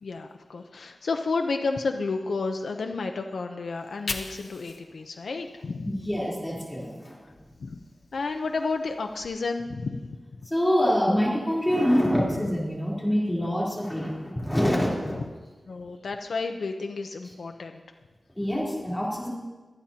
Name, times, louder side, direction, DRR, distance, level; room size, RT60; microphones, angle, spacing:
voice 1, 0.0-5.9 7.6-7.8 8.1-10.2 15.2-15.3 15.7-17.8, left 3 dB, 80° left, 4 dB, 0.6 m, -31 dB
Fire, 3.7-6.8 7.2-9.3, left 3 dB, 65° left, 1.0 m, -42 dB
voice 2, 5.8-7.2 10.5-15.2 18.4-19.3, equal, 10° left, -5 dB, 3.5 m, -25 dB
24.5 x 8.9 x 2.9 m, 1.3 s
wide cardioid pair, 120°, 0 cm